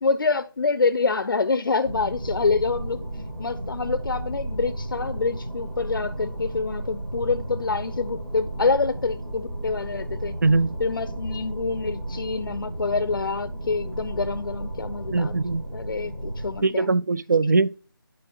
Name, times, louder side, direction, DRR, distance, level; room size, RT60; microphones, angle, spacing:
voice 1, 0.0-3.0 3.4-10.3 10.8-15.3 15.7-16.9, left 4 dB, 65° left, 0.5 m, -26 dB
sound 1, 1.8-16.6, right 1 dB, 80° right, 2.6 m, -33 dB
voice 2, 10.4-10.8 15.1-15.7 16.6-17.7, right 3 dB, 50° right, 0.3 m, -21 dB
9.0 x 4.9 x 3.0 m
figure-of-eight pair, 165°, 12 cm